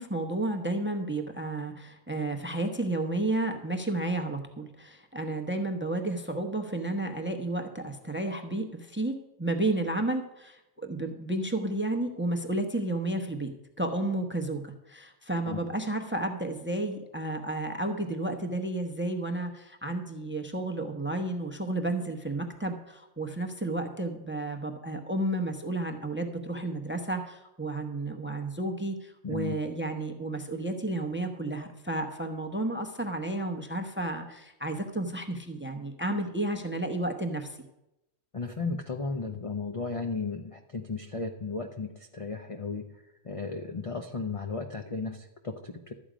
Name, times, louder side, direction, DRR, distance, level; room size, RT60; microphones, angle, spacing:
voice 1, 0.0-13.5 13.8-37.6, right 2 dB, 10° right, 6 dB, 0.5 m, -32 dB
voice 2, 29.2-29.6 38.3-42.9 43.2-45.9, left 4 dB, 55° left, 4 dB, 0.3 m, -35 dB
12.5 x 8.5 x 5.1 m, 0.92 s
omnidirectional pair, 1.6 m